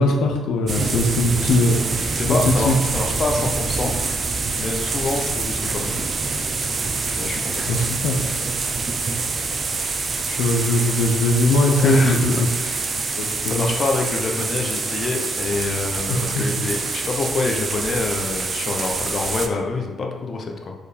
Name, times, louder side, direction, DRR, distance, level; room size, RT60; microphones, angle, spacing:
voice 1, 0.0-2.7 7.7-8.2 10.3-12.5 13.2-13.7 16.1-16.4, left 2 dB, 85° left, 2 dB, 0.7 m, -20 dB
sound 1, 0.7-19.5, right 4 dB, 40° right, 0.7 m, -26 dB
voice 2, 2.1-4.0 4.5-5.9 7.2-7.6 11.8-12.8 13.4-20.7, left 3 dB, 45° left, 2 dB, 1.0 m, -26 dB
4.9 x 4.3 x 5.2 m, 1.3 s
cardioid pair, 90°, 0 cm